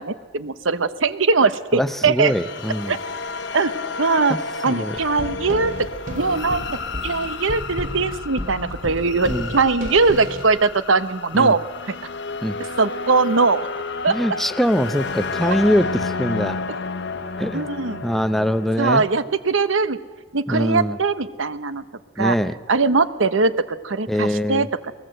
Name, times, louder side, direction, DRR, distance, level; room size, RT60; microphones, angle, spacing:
voice 1, 0.0-2.3 2.9-3.0 3.5-3.7 4.0-4.4 4.6-5.9 6.1-6.6 7.0-12.0 12.6-13.7 14.0-14.2 17.5-18.1 18.8-20.0 20.3-21.8 22.2-22.4 22.7-24.7, right 4 dB, 80° right, 13 dB, 1.0 m, -20 dB
voice 2, 1.7-3.0 4.3-4.4 4.7-5.0 9.2-9.5 11.3-11.5 12.4-12.6 14.1-16.6 17.4-17.7 18.0-19.0 20.5-21.0 22.2-22.5 24.1-24.7, equal, ahead, 12 dB, 0.6 m, -22 dB
sound 1, 2.2-19.2, left 4 dB, 65° left, 1.0 m, -31 dB
sound 2, 5.0-10.6, equal, 45° right, 2.6 m, -33 dB
23.0 x 21.0 x 7.9 m, 1.5 s
head